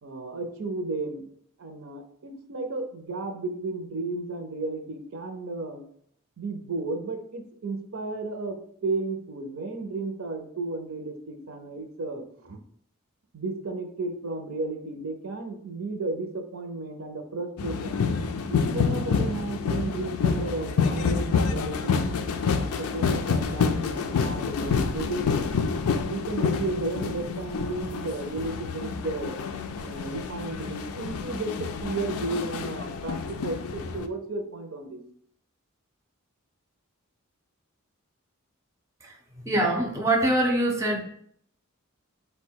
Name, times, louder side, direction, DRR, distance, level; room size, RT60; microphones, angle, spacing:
voice 1, 0.0-1.2 1.6-5.8 6.4-12.6 13.3-18.0 18.5-22.0 22.5-25.5 26.1-29.4 29.8-35.0, right 3 dB, 65° right, 6 dB, 0.6 m, -33 dB
sound 1, 17.6-34.1, left 5 dB, 80° left, 0.4 m, -28 dB
voice 2, 39.4-41.0, right 1 dB, 15° right, 1 dB, 0.5 m, -23 dB
4.2 x 2.2 x 4.4 m, 0.65 s
head